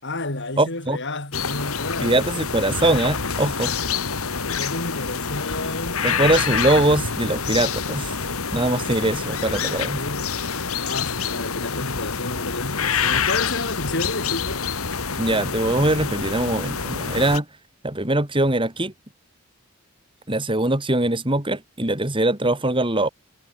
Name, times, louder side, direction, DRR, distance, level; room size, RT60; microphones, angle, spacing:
voice 1, 0.0-2.2 4.4-6.0 9.9-14.7, left 2 dB, 55° left, 4.5 m, -31 dB
voice 2, 0.6-1.0 2.0-3.7 6.0-8.1 8.5-10.0 15.2-17.5 17.8-18.9 20.3-23.1, right 2 dB, 25° right, 3.1 m, -22 dB
sound 1, 1.3-17.4, left 6 dB, 80° left, 2.2 m, -27 dB
head